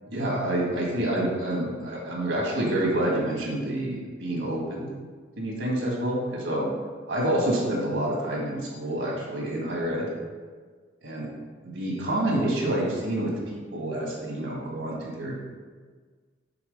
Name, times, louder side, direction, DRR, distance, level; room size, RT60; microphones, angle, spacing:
voice 1, 0.1-4.9 5.4-6.7 7.1-10.1 11.0-11.3 11.6-15.4, right 1 dB, 70° right, -2 dB, 1.7 m, -28 dB
5.9 x 4.0 x 5.3 m, 1.5 s
head